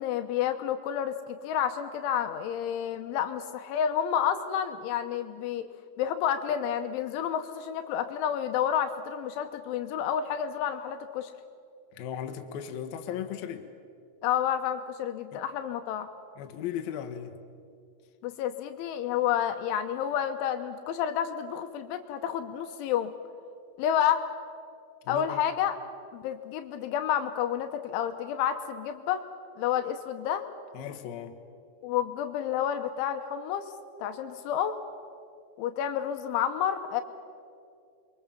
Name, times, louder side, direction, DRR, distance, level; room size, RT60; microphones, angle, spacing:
voice 1, 0.0-5.7 6.0-11.3 14.2-16.1 18.2-23.1 23.8-24.2 25.1-25.8 26.1-29.2 29.6-30.5 31.8-33.7 34.0-34.8 35.6-37.0, left 9 dB, 80° left, 7 dB, 3.3 m, -30 dB
voice 2, 11.9-13.7 15.3-15.4 16.4-17.4 25.1-25.4 30.7-31.4, left 9 dB, 65° left, 6 dB, 2.6 m, -37 dB
28.5 x 23.0 x 7.4 m, 2.4 s
omnidirectional pair, 5.8 m